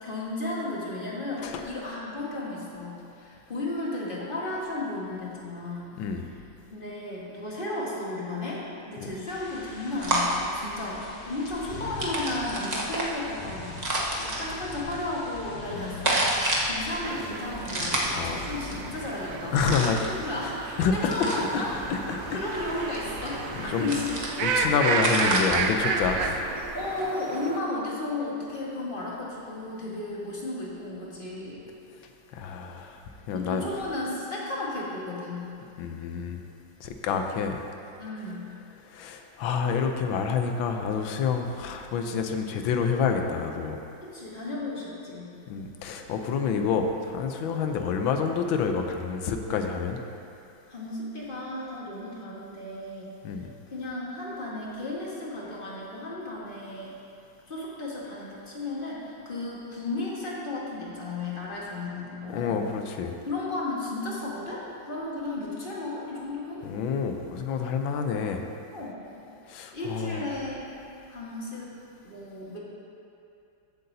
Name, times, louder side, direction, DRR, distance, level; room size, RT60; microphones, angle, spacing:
voice 1, 0.0-6.0 6.7-16.3 16.7-21.8 22.3-24.2 26.7-31.6 33.3-35.5 38.0-38.4 44.0-45.3 50.7-53.1 53.7-56.9 57.5-62.6 63.2-66.7 68.7-69.0 69.7-70.7 71.1-71.7 72.0-72.6, left 2 dB, 30° left, -5 dB, 1.6 m, -34 dB
sound 1, 9.3-23.8, left 2 dB, 50° left, 0.6 m, -44 dB
sound 2, 10.0-27.0, right 1 dB, 30° right, 0.9 m, -31 dB
voice 2, 15.7-16.1 18.1-18.4 19.5-20.0 20.8-21.6 21.9-22.4 23.6-23.9 24.4-26.4 32.3-33.6 35.8-36.4 36.8-37.6 38.8-43.8 45.5-50.0 53.2-53.5 62.3-63.2 66.6-68.4 69.5-70.2, left 6 dB, 85° left, 5 dB, 1.5 m, -28 dB
sound 3, 17.0-27.6, right 4 dB, 70° right, 0.8 m, -32 dB
14.5 x 7.9 x 2.8 m, 2.6 s
omnidirectional pair, 2.1 m